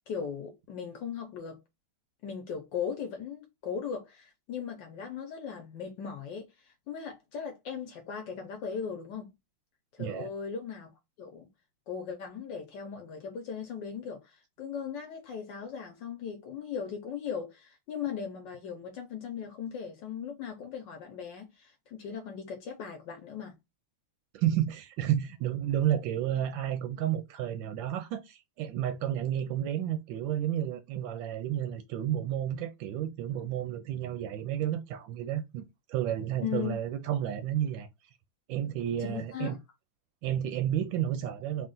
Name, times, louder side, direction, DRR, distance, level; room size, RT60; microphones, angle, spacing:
voice 1, 0.1-1.6 2.2-9.3 9.9-10.9 11.2-11.5 11.9-23.5 36.4-36.7 39.0-39.6, left 7 dB, 65° left, 1.2 m, -38 dB
voice 2, 10.0-10.3 24.3-35.6 35.9-37.9 38.5-39.6 40.2-41.7, right 11 dB, 75° right, 1.1 m, -31 dB
3.7 x 2.4 x 3.8 m
omnidirectional pair, 2.4 m